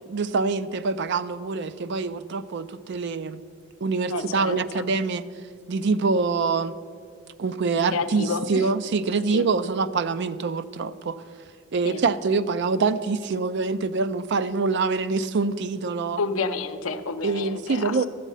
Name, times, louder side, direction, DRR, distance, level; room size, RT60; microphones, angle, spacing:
voice 1, 0.1-3.4 3.8-5.2 5.7-6.8 7.4-11.2 11.7-16.2 17.2-18.1, right 4 dB, 55° right, 13 dB, 0.4 m, -25 dB
voice 2, 4.1-4.9 7.9-8.6 9.3-9.4 11.8-12.0 16.2-18.1, left 4 dB, 75° left, 9 dB, 0.7 m, -30 dB
13.0 x 8.2 x 5.5 m, 2.3 s
head